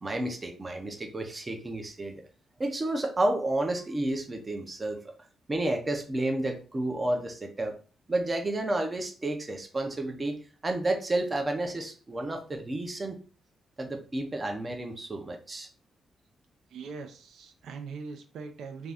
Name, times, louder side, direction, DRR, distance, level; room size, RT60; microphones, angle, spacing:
voice 1, 0.0-2.2 2.6-5.0 5.5-7.8 8.1-10.4 10.6-13.2 13.8-15.7, right 1 dB, 20° right, 4 dB, 0.4 m, -31 dB
voice 2, 16.7-18.9, right 5 dB, 85° right, 6 dB, 0.4 m, -41 dB
2.5 x 2.3 x 3.4 m, 0.37 s
wide cardioid pair, 155°, 0 cm